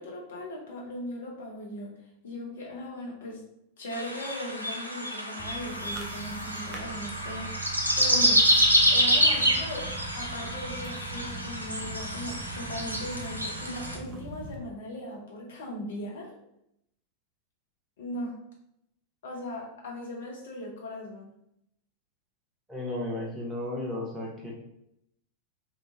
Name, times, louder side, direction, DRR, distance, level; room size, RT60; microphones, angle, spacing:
voice 1, 0.0-1.9 2.2-3.4 3.8-8.4 8.9-16.3 18.0-18.3 19.2-21.3, left 1 dB, 60° left, -2 dB, 0.8 m, -38 dB
sound 1, 3.9-14.0, equal, 85° right, 0.4 m, -27 dB
sound 2, 5.4-14.6, right 4 dB, 30° right, 0.5 m, -41 dB
voice 2, 22.7-24.5, left 1 dB, 10° right, -4 dB, 0.9 m, -34 dB
2.8 x 2.3 x 2.8 m, 0.79 s
figure-of-eight pair, 90°, 0 cm